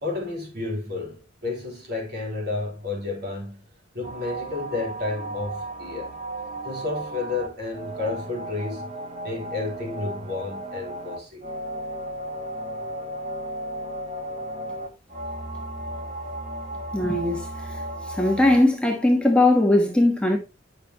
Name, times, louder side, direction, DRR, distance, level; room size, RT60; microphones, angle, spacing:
voice 1, 0.0-3.6 3.9-6.1 6.6-9.0 9.2-11.5, left 3 dB, 55° right, 3.8 m, -31 dB
sound 1, 4.0-18.6, right 1 dB, 35° right, 1.3 m, -34 dB
voice 2, 16.9-17.8 18.1-20.4, left 1 dB, 5° left, 1.2 m, -20 dB
9.3 x 6.6 x 3.0 m
head